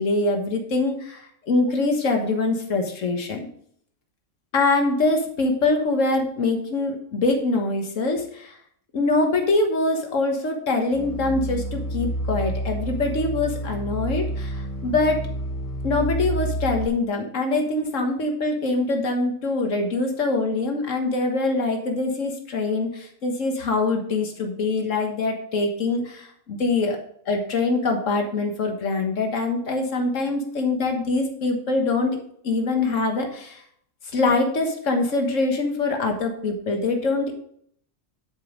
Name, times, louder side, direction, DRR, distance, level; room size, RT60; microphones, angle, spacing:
voice 1, 0.0-3.5 4.5-8.6 8.9-15.3 15.8-27.0 27.3-32.2 32.4-33.6 34.1-37.3, left 3 dB, 90° left, 3 dB, 1.7 m, -24 dB
sound 1, 10.9-16.9, right 1 dB, 20° left, 0.7 m, -29 dB
10.5 x 5.3 x 3.8 m, 0.64 s
omnidirectional pair, 1.3 m